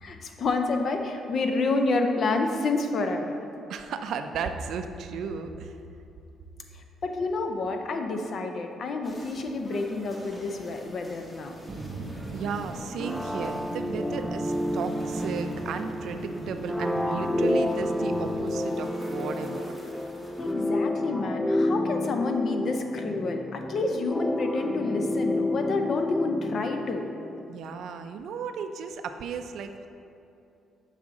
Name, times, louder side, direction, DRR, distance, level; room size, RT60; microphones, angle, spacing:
voice 1, 0.0-3.4 6.7-11.6 20.4-27.1, left 3 dB, 55° left, 5 dB, 0.6 m, -29 dB
voice 2, 3.7-5.8 12.3-19.8 27.5-29.9, right 6 dB, 75° right, 7 dB, 0.4 m, -35 dB
sound 1, 9.0-20.5, equal, 20° left, 1.2 m, -47 dB
sound 2, 11.7-18.4, right 2 dB, 45° right, 0.7 m, -39 dB
sound 3, 13.0-27.5, left 1 dB, ahead, 0.3 m, -30 dB
7.3 x 4.9 x 3.7 m, 2.7 s
cardioid pair, 90°, 0 cm